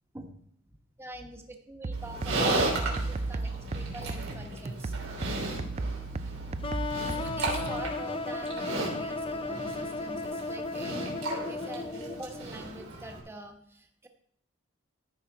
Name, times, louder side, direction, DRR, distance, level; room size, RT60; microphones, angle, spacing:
voice 1, 0.6-4.9 7.2-14.1, right 1 dB, 10° right, 3 dB, 1.2 m, -45 dB
sound 1, 1.8-7.9, right 3 dB, 30° right, 0.4 m, -35 dB
Livestock farm animals working animals, 1.9-13.2, right 2 dB, 80° right, 3.4 m, -35 dB
sound 2, 6.6-12.4, left 3 dB, 25° left, 0.5 m, -35 dB
13.5 x 5.8 x 4.7 m, 0.67 s
head